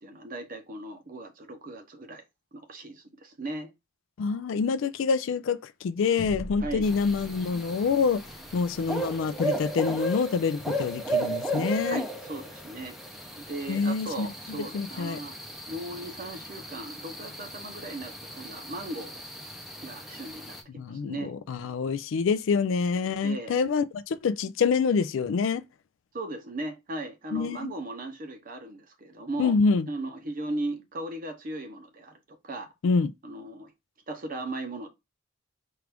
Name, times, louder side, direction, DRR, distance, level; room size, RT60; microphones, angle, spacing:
voice 1, 0.0-2.2 2.5-3.7 6.6-6.9 11.9-13.0 13.2-15.4 15.7-19.2 19.8-21.3 23.2-23.6 26.1-29.5 29.9-32.7 33.2-33.7 34.1-34.9, right 2 dB, 40° right, 0.7 m, -37 dB
voice 2, 4.2-8.2 8.5-12.0 13.7-15.2 20.8-25.6 27.3-27.7 29.4-29.9 32.8-33.1, left 5 dB, 65° left, 0.3 m, -26 dB
sound 1, 6.2-11.0, left 1 dB, 90° left, 0.8 m, -44 dB
sound 2, 6.8-20.6, right 1 dB, ahead, 0.6 m, -35 dB
4.6 x 2.5 x 3.3 m
head